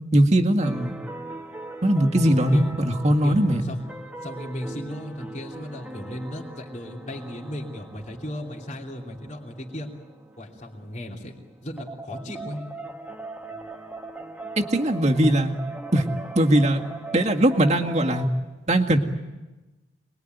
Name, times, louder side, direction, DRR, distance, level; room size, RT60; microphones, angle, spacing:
voice 1, 0.1-1.0 1.8-3.6 14.6-15.5 15.9-16.1 16.4-16.8 17.1-18.3 18.7-19.0, right 1 dB, 40° right, 2 dB, 1.9 m, -20 dB
sound 1, 0.6-18.3, right 2 dB, 5° right, 1.5 m, -40 dB
voice 2, 2.2-2.6 3.2-3.8 4.2-9.9 10.4-11.3 11.6-12.6, left 1 dB, 40° left, -1 dB, 3.1 m, -36 dB
27.0 x 21.0 x 9.3 m, 1.1 s
head